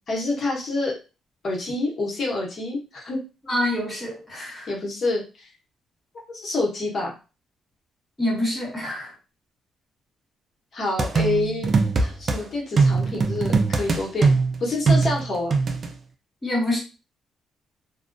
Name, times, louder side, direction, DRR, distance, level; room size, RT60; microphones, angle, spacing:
voice 1, 0.1-0.9 1.4-3.2 4.7-5.5 6.3-7.2 10.7-14.3 14.6-15.5, left 2 dB, 50° left, -1 dB, 1.0 m, -27 dB
voice 2, 3.5-4.7 8.2-9.1 16.4-16.8, left 1 dB, 20° left, -2 dB, 1.3 m, -26 dB
sound 1, 11.0-12.4 12.8-15.9, right 4 dB, 45° right, 0.4 m, -21 dB
2.2 x 2.2 x 2.5 m, 0.31 s
cardioid pair, 90°, 0 cm